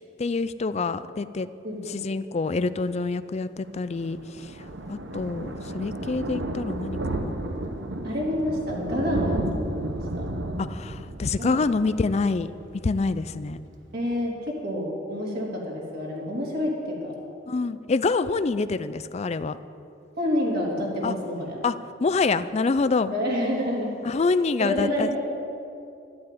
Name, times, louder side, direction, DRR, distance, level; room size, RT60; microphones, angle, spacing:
voice 1, 0.2-1.5 1.9-4.5 4.9-7.3 10.7-12.5 12.8-13.6 17.5-19.6 21.0-21.1 21.6-21.7 22.0-23.1 24.0-25.1, left 4 dB, 35° left, 14 dB, 0.4 m, -26 dB
voice 2, 1.6-2.0 8.0-10.2 11.4-11.6 13.9-17.1 20.2-21.6 23.1-24.0 24.6-25.2, left 1 dB, 55° right, -3 dB, 3.4 m, -28 dB
Thunder, 3.6-13.0 13.4-13.6 13.9-14.0 14.2-14.3, right 1 dB, 80° right, 1.1 m, -32 dB
13.0 x 8.6 x 9.4 m, 2.7 s
head